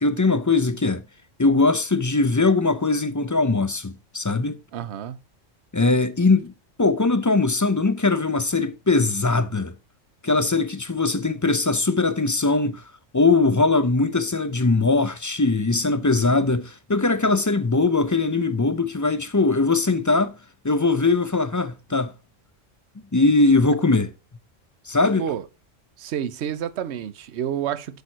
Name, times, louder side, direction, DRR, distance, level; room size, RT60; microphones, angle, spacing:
voice 1, 0.0-1.0 1.4-4.6 5.7-6.5 6.8-9.7 10.2-12.8 13.1-20.4 20.6-22.1 23.1-24.1 24.9-25.2, left 3 dB, 30° left, 0.3 m, -21 dB
voice 2, 4.7-5.2 25.2-25.4 26.0-28.0, right 9 dB, 65° right, 0.9 m, -29 dB
8.1 x 6.6 x 2.8 m
omnidirectional pair, 1.3 m